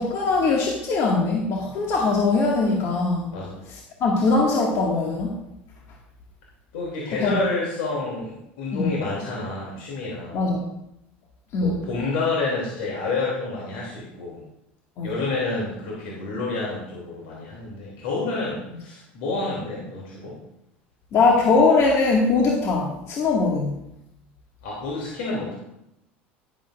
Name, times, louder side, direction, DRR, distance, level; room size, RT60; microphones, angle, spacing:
voice 1, 0.0-3.3 4.0-5.4 7.2-7.4 8.7-8.9 10.3-10.6 11.5-11.7 15.0-15.1 21.1-23.8, left 3 dB, 50° left, -2 dB, 2.1 m, -21 dB
voice 2, 6.7-10.4 11.6-14.4 15.0-20.4 24.6-25.6, left 3 dB, 70° left, -4 dB, 3.1 m, -29 dB
11.5 x 11.0 x 2.6 m, 0.84 s
hypercardioid pair, 75°, 6 cm